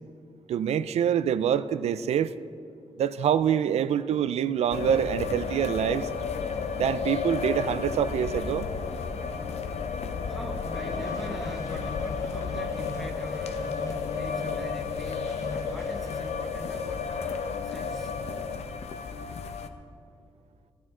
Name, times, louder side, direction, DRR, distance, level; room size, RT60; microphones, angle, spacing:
voice 1, 0.5-2.3 3.0-6.1 6.8-8.7, right 9 dB, 70° right, 14 dB, 0.4 m, -25 dB
sound 1, 4.7-19.7, left 5 dB, 70° left, 0.7 m, -32 dB
voice 2, 10.3-13.8 14.1-18.1, equal, ahead, 1 dB, 0.8 m, -43 dB
sound 2, 10.6-16.3, left 2 dB, 25° left, 1.1 m, -41 dB
14.5 x 13.5 x 3.7 m, 2.4 s
wide cardioid pair, 150°, 11 cm